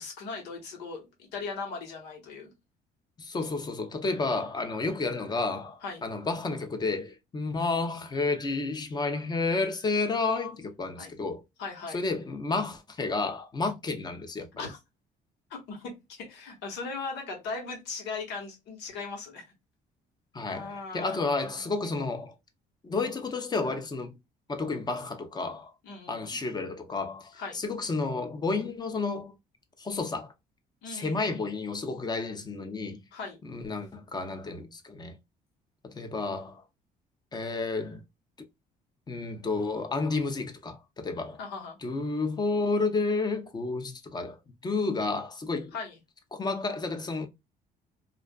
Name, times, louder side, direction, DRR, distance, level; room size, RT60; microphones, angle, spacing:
voice 1, 0.0-2.5 5.8-6.0 11.0-11.1 11.6-12.0 14.6-14.8 15.5-19.4 20.5-21.2 21.4-21.7 25.8-26.4 27.3-27.6 30.8-31.3 33.1-33.4 41.4-41.8 45.7-46.0, left 4 dB, 90° left, 1.2 m, -38 dB
voice 2, 3.2-11.4 11.9-14.6 20.3-22.3 22.8-24.2 24.5-25.7 26.1-29.3 29.8-30.3 30.9-33.0 33.4-35.1 35.8-36.6 37.3-38.0 39.1-41.4 41.8-44.4 44.6-45.7 46.3-47.3, left 3 dB, 25° left, 0.6 m, -31 dB
2.4 x 2.4 x 2.2 m
cardioid pair, 110°, 17 cm